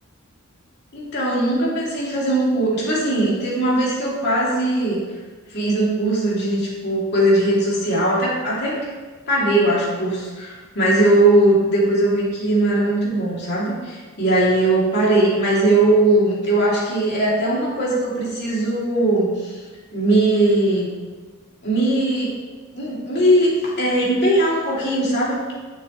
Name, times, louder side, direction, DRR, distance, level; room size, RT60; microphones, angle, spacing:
voice 1, 0.9-5.0 5.5-8.9 9.3-19.5 19.9-20.9 21.6-22.3 22.7-25.5, right 1 dB, 50° left, -6 dB, 2.6 m, -19 dB
10.0 x 6.5 x 3.1 m, 1.4 s
head